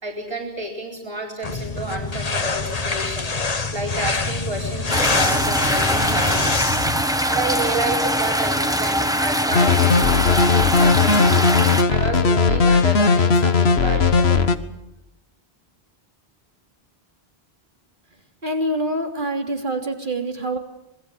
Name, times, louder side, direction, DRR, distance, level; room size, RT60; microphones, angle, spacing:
voice 1, 0.0-3.3 3.7-6.9 7.3-11.5 11.9-14.4, right 2 dB, 25° right, -1 dB, 4.3 m, -30 dB
sound 1, 1.4-7.0, left 3 dB, 40° left, 1.3 m, -25 dB
sound 2, 4.9-11.8, equal, 5° right, 1.2 m, -22 dB
sound 3, 9.5-14.6, left 4 dB, 80° left, 1.6 m, -17 dB
voice 2, 18.4-20.6, right 1 dB, 55° right, 3 dB, 3.4 m, -25 dB
26.5 x 21.0 x 7.9 m, 0.89 s
omnidirectional pair, 1.0 m